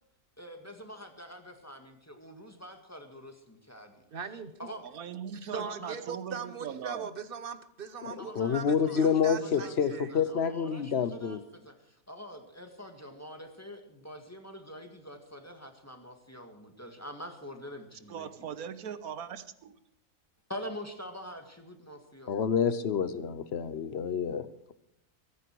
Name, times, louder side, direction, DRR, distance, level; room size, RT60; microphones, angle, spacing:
voice 1, 0.4-3.9 4.6-4.9 5.5-6.0 8.2-18.5 20.5-22.4, equal, 10° left, 5 dB, 1.8 m, -45 dB
voice 2, 4.1-4.6 5.3-10.2, right 6 dB, 40° right, 12 dB, 1.0 m, -40 dB
voice 3, 4.9-7.1 18.1-19.8, right 8 dB, 75° right, 12 dB, 1.4 m, -40 dB
voice 4, 8.0-11.4 22.3-24.7, left 7 dB, 50° left, 14 dB, 1.0 m, -28 dB
22.5 x 10.0 x 4.6 m, 0.79 s
omnidirectional pair, 1.6 m